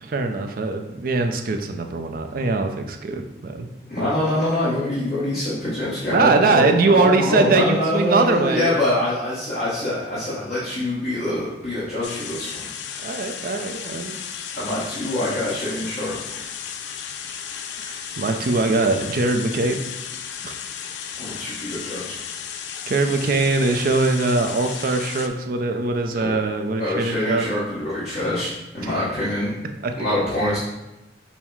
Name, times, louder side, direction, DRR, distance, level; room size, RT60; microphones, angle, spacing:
voice 1, 0.0-3.7 6.1-8.7 13.0-14.2 17.8-19.8 20.4-20.5 22.9-27.5 29.8-29.9, right 3 dB, 50° right, 5 dB, 0.4 m, -21 dB
voice 2, 3.9-12.7 14.6-16.1 21.2-22.2 26.1-26.4 26.8-29.5 30.0-30.6, left 1 dB, 40° left, -10 dB, 1.1 m, -25 dB
sound 1, 12.0-25.3, left 8 dB, 70° left, 0.4 m, -34 dB
5.5 x 2.1 x 4.5 m, 0.97 s
head